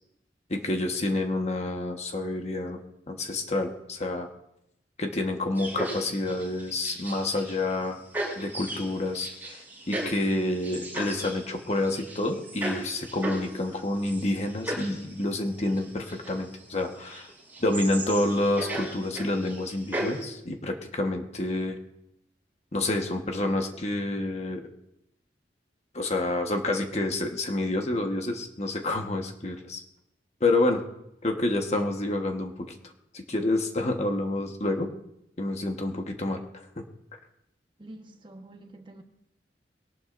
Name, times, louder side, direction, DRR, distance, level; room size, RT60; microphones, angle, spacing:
voice 1, 0.5-2.8 3.1-4.3 5.0-8.0 8.4-17.3 17.6-21.8 22.7-24.6 25.9-29.8 30.4-30.8 31.2-34.9 35.4-36.8, left 2 dB, 40° left, 1.3 m, -28 dB
sound 1, 5.6-7.8 8.1-20.2, right 1 dB, 10° right, 6.8 m, -36 dB
voice 2, 37.8-39.0, right 1 dB, 30° right, 1.2 m, -47 dB
22.0 x 18.5 x 2.6 m
head